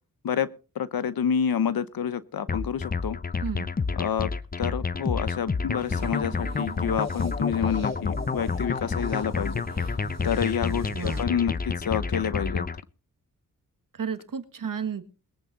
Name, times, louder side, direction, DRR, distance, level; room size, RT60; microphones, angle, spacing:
voice 1, 0.7-3.2 4.0-4.3 4.6-10.0 10.2-12.6, left 8 dB, 80° left, 16 dB, 1.0 m, -28 dB
sound 1, 2.5-12.8, left 4 dB, 25° left, 0.7 m, -29 dB
sound 2, 5.8-11.2, right 6 dB, 45° right, 1.0 m, -44 dB
voice 2, 10.9-11.3 13.9-15.0, right 7 dB, 65° right, 10 dB, 1.7 m, -32 dB
21.5 x 8.6 x 4.1 m, 0.35 s
cardioid pair, 65°, 35 cm